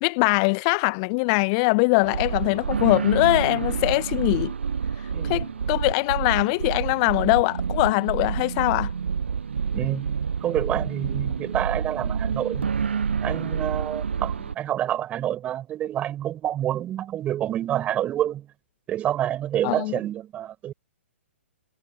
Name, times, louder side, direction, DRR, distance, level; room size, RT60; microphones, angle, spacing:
voice 1, 0.0-4.5 5.2-8.9 19.6-19.9, left 34 dB, 30° left, 0.5 m, -22 dB
sound 1, 2.0-14.5, right 6 dB, 60° right, 0.9 m, -28 dB
voice 2, 5.1-5.5 9.7-10.1 10.4-12.7 13.2-18.5 18.9-20.7, right 11 dB, 20° right, 4.7 m, -28 dB
figure-of-eight pair, 120°, 7 cm